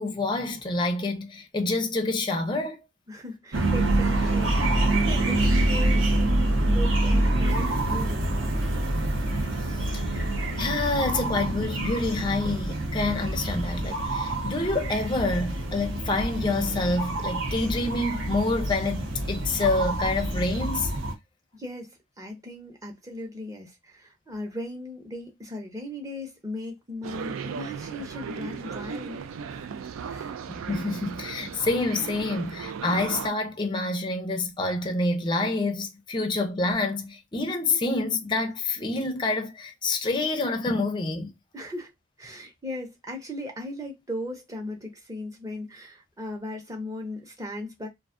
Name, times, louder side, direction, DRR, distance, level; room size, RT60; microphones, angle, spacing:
voice 1, 0.0-2.8 9.8-10.0 10.6-20.9 30.5-41.3, left 2 dB, 25° left, 0.4 m, -27 dB
voice 2, 3.1-8.3 21.5-29.3 30.1-30.4 41.5-41.9 42.2-47.9, left 1 dB, 15° right, 0.6 m, -37 dB
sound 1, 3.5-21.1, right 1 dB, 65° right, 0.7 m, -26 dB
sound 2, 27.0-33.3, right 6 dB, 85° right, 0.3 m, -36 dB
2.5 x 2.3 x 2.4 m
head